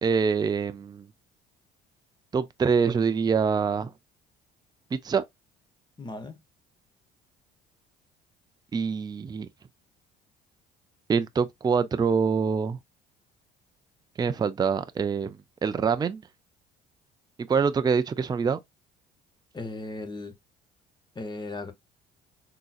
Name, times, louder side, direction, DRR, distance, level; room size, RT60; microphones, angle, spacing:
voice 1, 0.0-1.1 2.3-3.9 4.9-5.2 8.7-9.5 11.1-12.8 14.2-15.4 15.6-16.2 17.5-18.6, right 6 dB, 20° right, 0.4 m, -25 dB
voice 2, 6.0-6.4 19.5-20.3 21.1-21.7, left 2 dB, 20° left, 1.0 m, -36 dB
3.7 x 2.8 x 2.4 m
hypercardioid pair, 70°, 21 cm